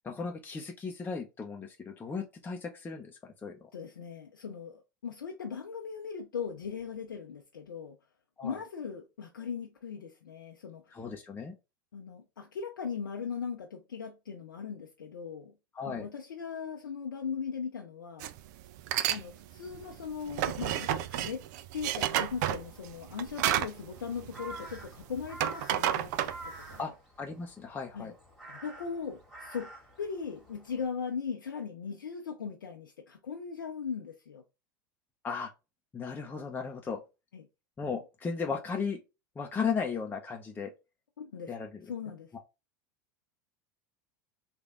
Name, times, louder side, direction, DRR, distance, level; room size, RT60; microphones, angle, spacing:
voice 1, 0.0-3.7 8.4-8.6 10.9-11.5 15.7-16.1 26.8-26.9 27.2-28.1 35.2-35.5 35.9-37.0 37.8-39.0 39.4-40.7 41.5-41.8, left 5 dB, 20° left, 0.6 m, -36 dB
voice 2, 3.7-7.9 8.4-10.9 11.9-15.5 15.8-18.3 19.1-21.4 21.7-26.9 27.9-28.1 28.5-29.7 30.0-34.4 37.3-37.4 41.2-41.5 41.9-42.3, left 6 dB, 85° left, 0.6 m, -39 dB
sound 1, 18.2-18.4 18.8-19.2 19.6-24.9 25.2-26.8, right 12 dB, 60° right, 0.4 m, -31 dB
Crow, 22.4-30.9, right 2 dB, ahead, 1.9 m, -49 dB
3.3 x 2.5 x 3.5 m
hypercardioid pair, 90°, 11 cm